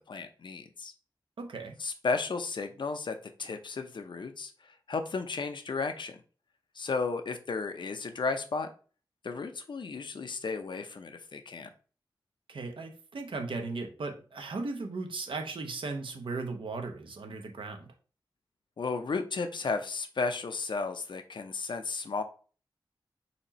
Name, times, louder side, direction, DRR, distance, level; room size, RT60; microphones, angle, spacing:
voice 1, 0.1-0.9 1.8-4.5 4.9-6.2 6.8-8.7 9.2-11.7 18.8-22.2, left 4 dB, 65° left, 7 dB, 0.6 m, -34 dB
voice 2, 1.4-1.8 12.5-17.9, right 3 dB, 80° right, 4 dB, 0.8 m, -37 dB
4.3 x 2.9 x 4.1 m, 0.38 s
wide cardioid pair, 115°, 9 cm